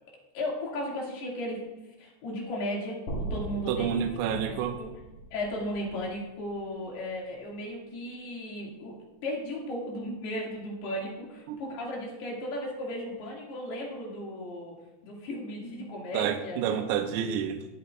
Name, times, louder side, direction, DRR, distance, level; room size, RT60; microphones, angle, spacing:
voice 1, 0.3-1.6 2.0-3.9 4.3-4.9 5.3-8.9 9.2-14.8 15.0-16.8, left 1 dB, 65° left, -3 dB, 4.4 m, -35 dB
sound 1, 3.1-7.2, right 2 dB, 50° left, 1.9 m, -39 dB
voice 2, 3.7-4.8 11.0-11.1 11.5-11.6 16.1-17.7, right 8 dB, 85° right, 4 dB, 2.8 m, -29 dB
17.0 x 9.4 x 2.5 m, 1.0 s
omnidirectional pair, 5.0 m